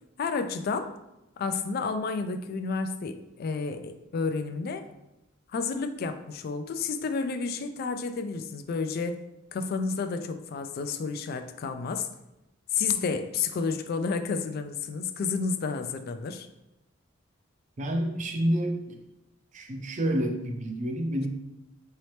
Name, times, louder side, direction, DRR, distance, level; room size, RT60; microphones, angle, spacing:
voice 1, 0.2-0.9 1.4-4.9 5.5-9.2 9.5-12.1 12.7-16.5, left 4 dB, 50° left, 9 dB, 0.3 m, -31 dB
voice 2, 17.8-19.0 19.5-21.3, right 1 dB, 40° right, 3 dB, 0.5 m, -28 dB
4.1 x 2.8 x 3.2 m, 0.93 s
head